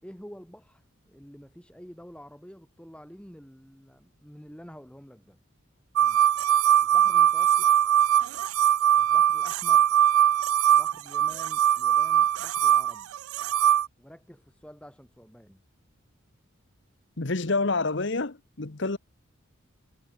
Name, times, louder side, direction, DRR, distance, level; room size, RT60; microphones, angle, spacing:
voice 1, 0.0-5.4 6.0-6.2 6.8-7.7 9.0-10.0 10.7-13.1 14.0-15.6, equal, 5° left, 4.0 m, -48 dB
sound 1, 6.0-13.9, right 10 dB, 85° right, 0.3 m, -21 dB
voice 2, 17.2-19.0, left 3 dB, 55° left, 1.2 m, -28 dB
head